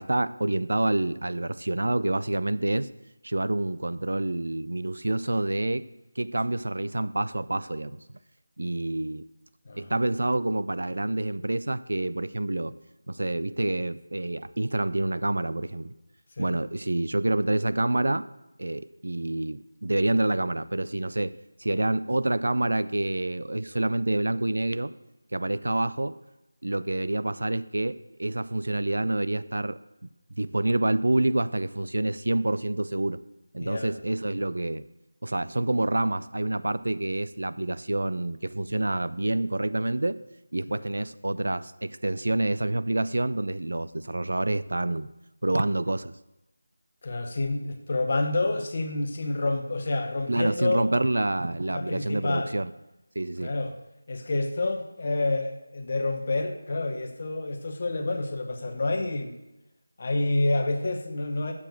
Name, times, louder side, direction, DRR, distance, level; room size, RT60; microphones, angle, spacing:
voice 1, 0.0-2.9 3.2-5.8 6.2-8.2 8.6-9.2 9.7-12.7 13.1-15.9 16.4-18.3 18.6-21.3 21.6-24.9 25.3-26.2 26.6-29.8 30.4-33.2 33.5-34.8 35.2-40.2 40.5-45.1 45.4-46.1 50.3-52.7 53.2-53.6, right 2 dB, 70° right, 15 dB, 0.4 m, -27 dB
voice 2, 9.6-10.0 16.4-16.6 33.6-33.9 40.7-40.8 47.0-50.9 51.7-52.5 53.4-53.8 54.1-59.3 60.0-61.5, left 2 dB, 30° left, 5 dB, 0.9 m, -28 dB
7.2 x 6.9 x 7.8 m, 0.97 s
figure-of-eight pair, 180°, 0 cm